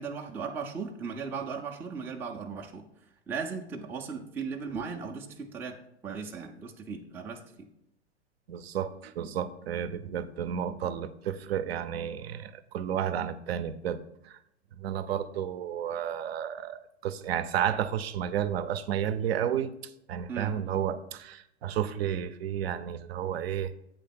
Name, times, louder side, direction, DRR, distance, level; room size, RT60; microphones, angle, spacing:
voice 1, 0.0-2.8 3.3-5.8 6.0-7.7 20.3-20.6, right 5 dB, 5° right, 1 dB, 0.4 m, -37 dB
voice 2, 8.5-14.4 14.8-19.7 20.1-23.7, right 9 dB, 60° right, 12 dB, 0.6 m, -32 dB
8.2 x 3.4 x 5.7 m, 0.80 s
hypercardioid pair, 115°, 35 cm